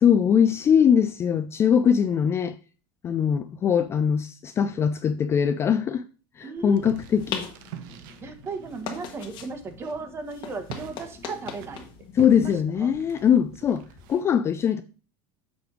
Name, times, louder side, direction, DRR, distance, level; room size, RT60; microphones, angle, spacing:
voice 1, 0.0-2.6 3.0-6.0 6.4-7.5 12.2-14.8, left 8 dB, 25° left, 0.3 m, -21 dB
voice 2, 6.4-6.9 8.2-11.8 12.4-12.5 12.8-12.9, right 4 dB, 25° right, 1.0 m, -35 dB
sound 1, 6.6-14.1, left 7 dB, 45° left, 1.5 m, -41 dB
sound 2, 6.7-14.2, right 7 dB, 75° right, 0.9 m, -45 dB
7.1 x 3.3 x 5.9 m
cardioid pair, 150°, 11 cm